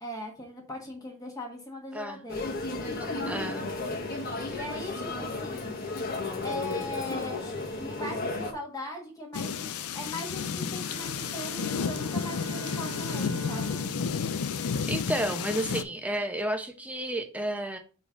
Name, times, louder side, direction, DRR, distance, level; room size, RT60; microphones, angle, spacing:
voice 1, 0.0-2.5 4.5-5.8 6.4-7.4 7.8-13.8, left 1 dB, 15° left, 1 dB, 1.3 m, -39 dB
sound 1, 2.3-8.5, left 2 dB, 45° left, 1.1 m, -33 dB
voice 2, 3.3-3.6 14.9-17.8, right 1 dB, 5° right, 5 dB, 0.8 m, -31 dB
sound 2, 9.3-15.8, left 6 dB, 75° left, 0.5 m, -32 dB
Bowed string instrument, 10.9-15.6, right 1 dB, 70° right, 0.9 m, -43 dB
5.1 x 4.1 x 5.0 m, 0.37 s
head